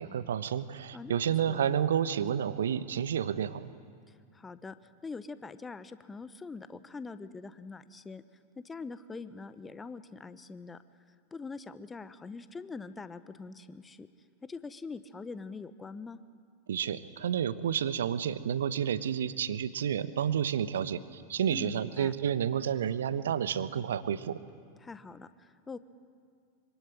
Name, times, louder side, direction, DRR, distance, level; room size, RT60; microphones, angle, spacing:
voice 1, 0.0-3.7 16.7-24.4, right 9 dB, 65° right, 14 dB, 1.1 m, -30 dB
voice 2, 0.9-1.7 4.1-4.7 5.0-8.2 8.6-10.8 11.3-14.1 14.4-16.2 21.5-22.1 24.8-25.8, left 4 dB, 15° left, 14 dB, 1.1 m, -43 dB
25.5 x 25.0 x 9.0 m, 2.2 s
figure-of-eight pair, 90°, 0 cm